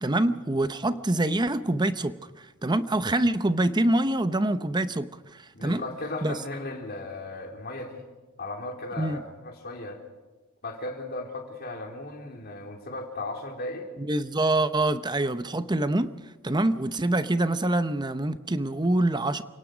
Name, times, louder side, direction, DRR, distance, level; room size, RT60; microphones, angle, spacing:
voice 1, 0.0-2.2 2.6-5.8 6.2-6.4 9.0-9.2 14.1-16.1 16.4-19.4, right 1 dB, 20° right, 0.8 m, -25 dB
voice 2, 5.5-8.0 8.4-10.0 10.6-13.9, left 2 dB, 45° left, 3.4 m, -36 dB
29.0 x 18.0 x 5.1 m
head